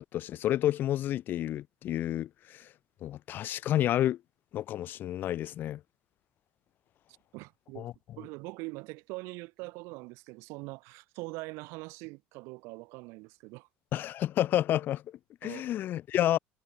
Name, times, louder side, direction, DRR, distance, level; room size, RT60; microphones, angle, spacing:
voice 1, 0.0-2.7 3.0-4.2 4.5-5.8 7.8-7.9 13.9-15.0 15.4-16.4, left 12 dB, 50° left, 2.6 m, -30 dB
voice 2, 7.3-7.9 8.2-13.7 15.4-15.7, right 26 dB, 80° right, 5.5 m, -43 dB
cardioid pair, 150°, 4 cm